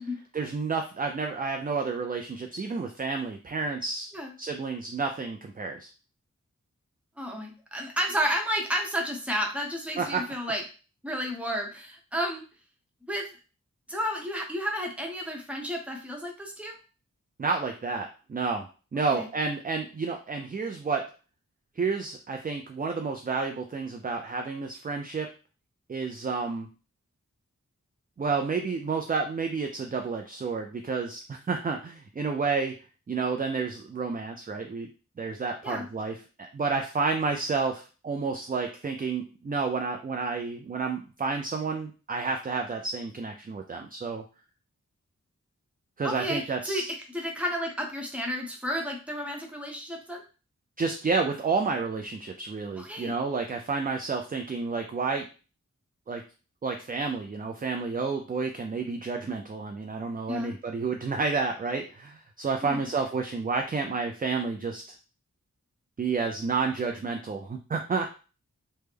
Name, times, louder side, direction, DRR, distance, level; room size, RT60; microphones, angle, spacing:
voice 1, 0.3-4.1 4.4-5.9 10.0-10.2 17.4-21.1 21.8-25.3 25.9-26.7 28.2-32.8 33.1-34.9 35.2-36.2 36.5-44.2 46.0-46.9 50.8-55.3 56.1-56.2 56.6-64.8 66.0-68.1, right 4 dB, 30° right, 4 dB, 0.4 m, -30 dB
voice 2, 7.2-10.6 11.0-12.4 13.1-13.3 13.9-16.8 19.1-19.3 35.6-35.9 46.0-46.8 47.1-50.2 52.8-53.1 60.3-60.5 62.6-62.9, equal, 5° right, 1 dB, 0.9 m, -31 dB
3.3 x 2.1 x 3.3 m, 0.34 s
wide cardioid pair, 60°, 30 cm